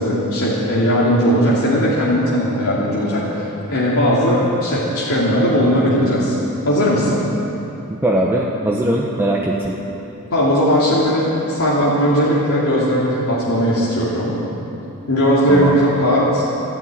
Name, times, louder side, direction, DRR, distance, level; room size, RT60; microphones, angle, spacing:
voice 1, 0.0-6.4 6.6-7.2 10.3-14.4 15.1-16.4, equal, 70° left, -8 dB, 2.8 m, -17 dB
voice 2, 7.9-9.8 15.5-15.8, right 1 dB, 10° right, -3 dB, 1.0 m, -20 dB
12.5 x 12.0 x 8.9 m, 2.9 s
head